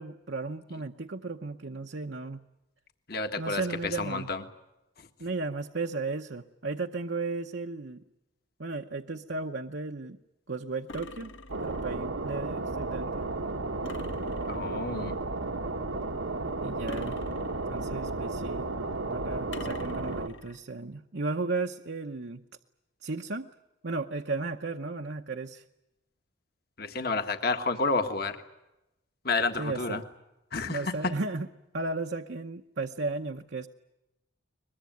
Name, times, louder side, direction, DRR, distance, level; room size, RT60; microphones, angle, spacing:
voice 1, 0.0-2.4 3.4-4.3 5.2-8.0 8.6-10.2 10.5-11.3 11.6-13.3 16.6-17.2 17.6-18.6 19.1-22.4 23.0-23.5 23.8-25.6 29.6-30.0 30.7-31.5 31.7-33.7, right 3 dB, 60° right, 4 dB, 0.9 m, -34 dB
voice 2, 3.1-3.6 4.0-4.4 14.5-15.2 26.8-28.4 29.2-30.0 30.5-30.9, left 3 dB, 50° left, 7 dB, 1.6 m, -30 dB
sound 1, 10.9-11.9 13.8-14.9 16.9-18.0 19.5-20.6, left 2 dB, 65° left, 1.7 m, -44 dB
sound 2, 11.5-20.3, right 2 dB, 85° right, 1.6 m, -33 dB
23.0 x 21.5 x 9.2 m, 0.95 s
head